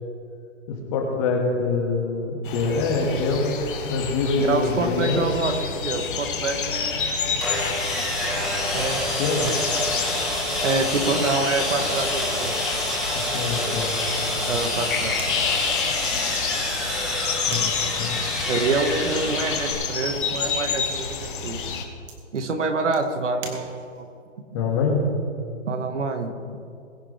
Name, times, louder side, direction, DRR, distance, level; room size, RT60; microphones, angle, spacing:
voice 1, 0.7-3.6 3.9-5.3 9.2-9.5 13.1-13.9 14.4-14.5 17.5-17.7 18.0-18.2 24.5-25.0, left 3 dB, 25° left, 1 dB, 2.1 m, -25 dB
sound 1, 2.4-21.8, left 6 dB, 40° left, 1.9 m, -30 dB
voice 2, 4.5-7.4 8.7-9.2 9.5-10.0 10.6-12.6 14.5-15.3 18.5-21.6 22.3-24.1 25.7-26.3, right 3 dB, 70° right, 6 dB, 1.9 m, -27 dB
Sawing, 7.4-19.7, left 1 dB, ahead, 1.5 m, -27 dB
sound 2, 15.1-24.2, right 4 dB, 25° right, 1.6 m, -46 dB
21.5 x 9.6 x 3.5 m, 2.4 s
hypercardioid pair, 160°, 38 cm